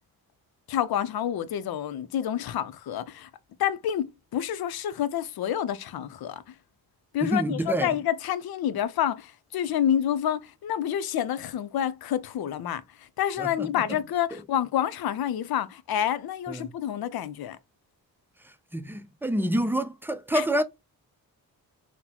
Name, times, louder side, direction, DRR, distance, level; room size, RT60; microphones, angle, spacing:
voice 1, 0.7-3.3 3.6-4.1 4.3-6.4 7.1-17.6 20.3-20.5, left 10 dB, 75° left, 0.6 m, -28 dB
voice 2, 7.2-7.9 13.4-13.7 16.5-16.7 18.7-20.6, right 1 dB, 5° right, 0.4 m, -27 dB
3.9 x 2.1 x 2.8 m
cardioid pair, 75°, 37 cm